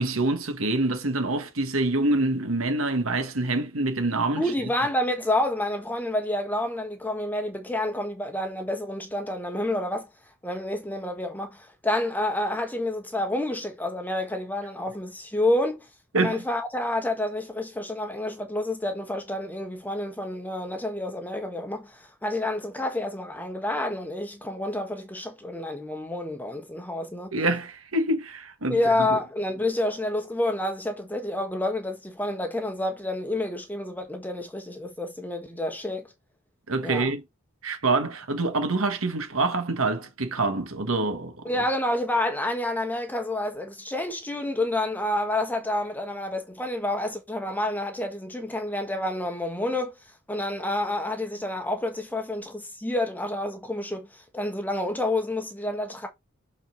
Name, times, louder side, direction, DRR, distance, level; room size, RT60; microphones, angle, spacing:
voice 1, 0.0-4.4 16.1-16.4 27.3-29.2 36.7-37.2 37.6-41.4, right 2 dB, 80° right, 1.6 m, -26 dB
voice 2, 4.4-10.1 10.4-15.9 16.2-27.3 28.7-36.1 36.8-37.1 41.4-50.0 50.3-54.1 54.3-56.1, left 1 dB, 10° left, 1.4 m, -29 dB
6.9 x 4.2 x 4.0 m
head